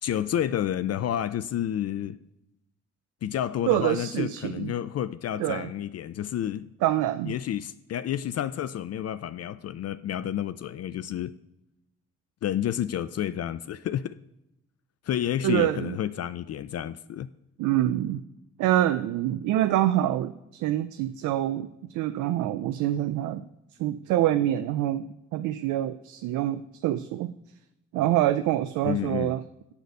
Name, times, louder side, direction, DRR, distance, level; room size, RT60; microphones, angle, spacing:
voice 1, 0.0-2.2 3.2-6.7 7.3-11.3 12.4-14.2 15.1-17.3 28.8-29.3, left 10 dB, 55° left, 0.5 m, -30 dB
voice 2, 3.7-4.7 5.4-5.7 6.8-7.3 15.4-16.0 17.6-18.2 18.6-23.4 23.8-27.3 27.9-29.4, right 13 dB, 80° right, 0.5 m, -26 dB
11.5 x 4.1 x 7.8 m
hypercardioid pair, 45°, 30 cm